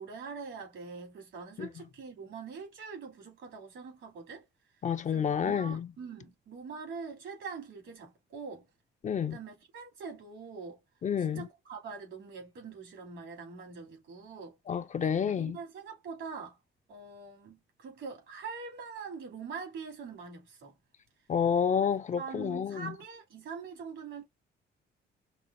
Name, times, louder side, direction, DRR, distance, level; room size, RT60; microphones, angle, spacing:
voice 1, 0.0-4.4 5.1-8.6 9.3-10.8 11.2-14.6 15.0-16.6 16.9-20.7 22.2-24.2, right 5 dB, 80° right, 2.7 m, -43 dB
voice 2, 4.8-5.9 9.0-9.4 11.0-11.5 14.7-15.6 21.3-22.9, left 7 dB, 40° left, 0.4 m, -29 dB
5.3 x 2.0 x 2.6 m
cardioid pair, 90°, 20 cm